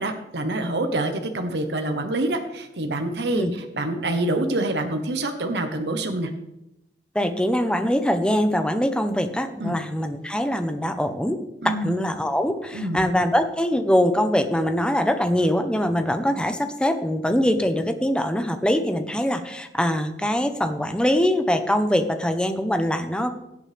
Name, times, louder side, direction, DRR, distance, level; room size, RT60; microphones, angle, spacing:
voice 1, 0.0-3.4 3.7-6.3 9.6-9.8 11.6-12.0 12.7-13.0, right 1 dB, 75° right, 6 dB, 1.1 m, -26 dB
voice 2, 7.1-11.4 11.6-23.3, equal, 5° left, 7 dB, 0.9 m, -23 dB
17.0 x 8.3 x 3.4 m, 0.87 s
head